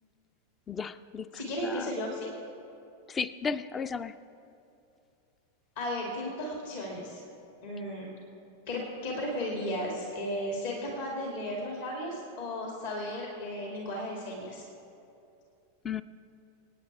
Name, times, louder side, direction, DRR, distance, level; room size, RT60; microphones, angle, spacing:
voice 1, 0.7-1.9 3.1-4.2 15.8-16.0, left 5 dB, 20° left, 15 dB, 0.5 m, -35 dB
voice 2, 1.3-2.3 5.8-7.2 7.6-8.1 8.7-14.6, left 1 dB, 55° left, -1 dB, 2.5 m, -35 dB
27.0 x 9.4 x 3.5 m, 2.7 s
figure-of-eight pair, 90°, 0 cm